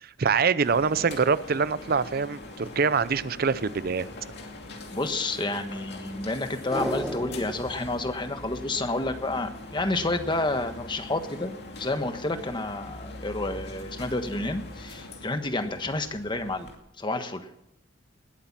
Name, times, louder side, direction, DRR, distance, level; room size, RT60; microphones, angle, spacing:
voice 1, 0.0-4.1, right 5 dB, 50° right, 16 dB, 0.6 m, -25 dB
sound 1, 0.6-16.8, left 2 dB, 55° left, 2.5 m, -42 dB
voice 2, 4.9-17.6, left 2 dB, 25° left, 8 dB, 1.3 m, -30 dB
sound 2, 6.7-9.2 9.5-9.6, equal, 5° right, 1.5 m, -35 dB
19.5 x 8.6 x 7.4 m, 0.81 s
head